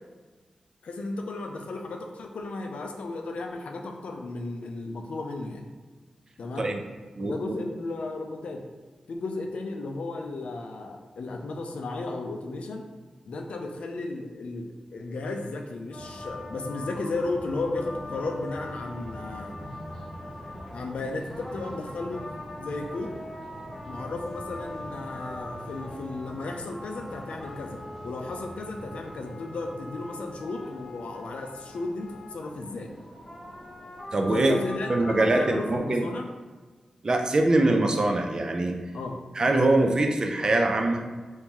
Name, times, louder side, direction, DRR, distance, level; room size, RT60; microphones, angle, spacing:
voice 1, 0.8-5.7 6.4-6.7 7.2-8.6 9.1-12.8 13.3-19.6 20.7-22.3 22.6-23.1 23.8-27.8 28.0-32.9 34.3-36.2 38.9-39.1, left 2 dB, 85° left, 3 dB, 0.4 m, -34 dB
voice 2, 7.2-7.5 34.1-34.5 34.9-36.0 37.0-38.8 39.3-41.0, right 2 dB, 40° right, 3 dB, 0.4 m, -23 dB
sound 1, 15.9-35.8, left 1 dB, 20° left, 0.8 m, -41 dB
2.9 x 2.6 x 3.6 m, 1.4 s
wide cardioid pair, 120°, 2 cm